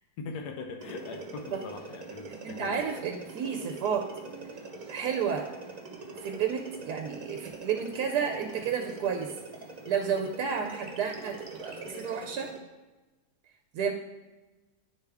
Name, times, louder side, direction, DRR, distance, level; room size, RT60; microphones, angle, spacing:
voice 1, 0.2-2.8, left 4 dB, 85° left, 4 dB, 1.2 m, -41 dB
sound 1, 0.8-12.6, right 3 dB, 50° right, 0.5 m, -44 dB
voice 2, 2.4-4.1 4.9-5.5 6.2-9.3 9.9-12.5 13.7-13.9, right 7 dB, 80° right, 3 dB, 1.1 m, -31 dB
10.5 x 3.4 x 3.4 m, 1.2 s
omnidirectional pair, 1.7 m